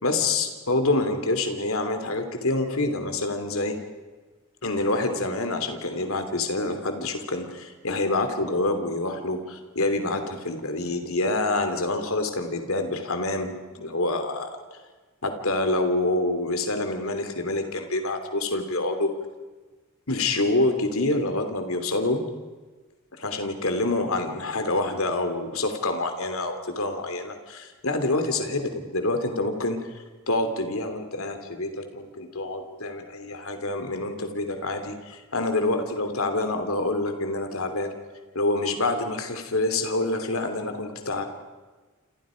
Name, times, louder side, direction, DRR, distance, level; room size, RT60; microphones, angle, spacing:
voice 1, 0.0-3.8 4.6-14.6 15.2-19.1 20.1-22.2 23.1-29.8 30.3-37.9 38.3-41.2, left 2 dB, 70° left, 7 dB, 3.0 m, -27 dB
28.5 x 28.0 x 5.2 m, 1.3 s
head